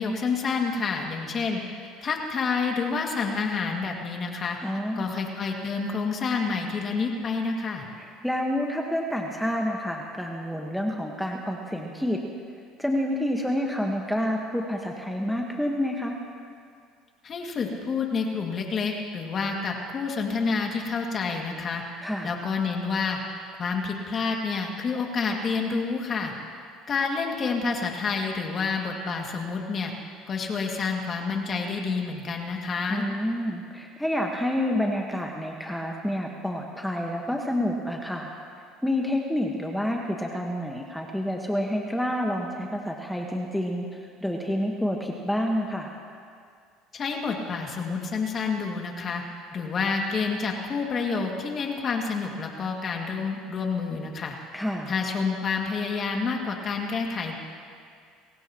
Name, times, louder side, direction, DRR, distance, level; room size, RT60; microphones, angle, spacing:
voice 1, 0.0-1.6 2.0-4.6 5.0-7.8 17.2-21.8 22.2-23.2 23.6-26.3 26.9-29.9 30.3-33.1 46.9-49.2 49.5-54.3 54.9-57.4, left 4 dB, 40° left, 1 dB, 2.3 m, -28 dB
voice 2, 4.6-5.1 8.0-12.2 12.8-16.1 22.0-22.3 32.9-38.3 38.8-45.9 54.5-54.9, equal, ahead, 0 dB, 1.5 m, -28 dB
30.0 x 15.5 x 3.1 m, 2.2 s
supercardioid pair, 95°, 0 cm